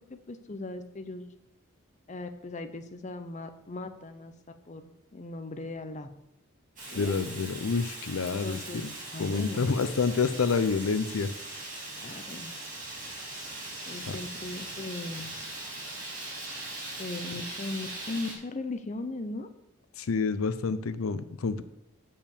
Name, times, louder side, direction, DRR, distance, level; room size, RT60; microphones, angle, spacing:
voice 1, 0.1-1.3 2.1-4.3 4.7-6.1 6.9-7.2 8.4-8.8 9.1-9.6 12.0-12.5 13.8-15.3 17.0-19.5, left 2 dB, 35° left, 8 dB, 0.6 m, -38 dB
Fire, 6.8-18.3, right 2 dB, 40° right, 2.5 m, -40 dB
voice 2, 6.9-8.9 9.2-11.3 14.1-14.2 20.0-21.6, left 4 dB, 85° left, 12 dB, 0.5 m, -28 dB
6.8 x 5.4 x 7.1 m, 0.83 s
head